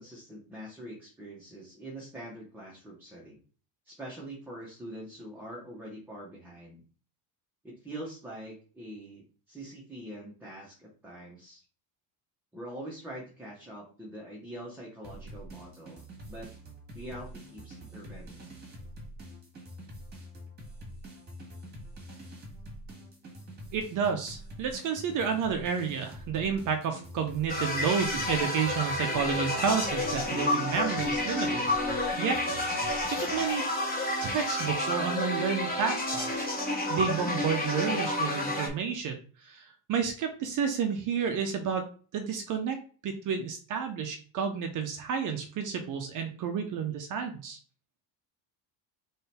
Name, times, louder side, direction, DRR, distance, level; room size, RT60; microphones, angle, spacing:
voice 1, 0.0-3.4 3.8-6.8 7.6-11.6 12.5-16.5 16.9-18.5, right 1 dB, 5° right, -5 dB, 0.9 m, -44 dB
sound 1, 15.0-33.5, right 1 dB, 20° right, 1.5 m, -46 dB
voice 2, 23.7-33.6 34.2-41.8 42.1-42.8 43.0-47.6, right 6 dB, 40° right, 5 dB, 0.7 m, -31 dB
sound 2, 27.5-38.7, left 1 dB, 20° left, 1.3 m, -30 dB
3.8 x 3.2 x 4.2 m, 0.40 s
cardioid pair, 160°, 48 cm